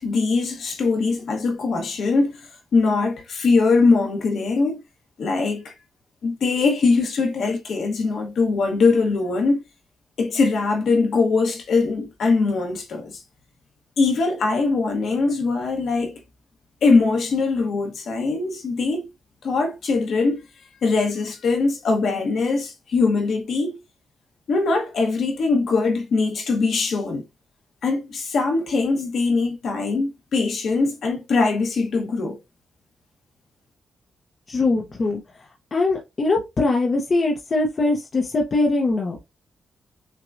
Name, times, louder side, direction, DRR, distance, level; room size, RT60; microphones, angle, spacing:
voice 1, 0.0-2.3 2.7-4.8 5.2-5.7 6.2-9.6 10.2-13.2 14.0-16.1 16.8-19.1 19.4-20.4 20.8-23.7 24.5-27.2 27.8-32.4, left 3 dB, 60° left, 1.1 m, -21 dB
voice 2, 34.5-35.2 35.7-39.2, left 2 dB, 35° left, 0.7 m, -22 dB
5.8 x 2.2 x 2.5 m
wide cardioid pair, 160°, 0 cm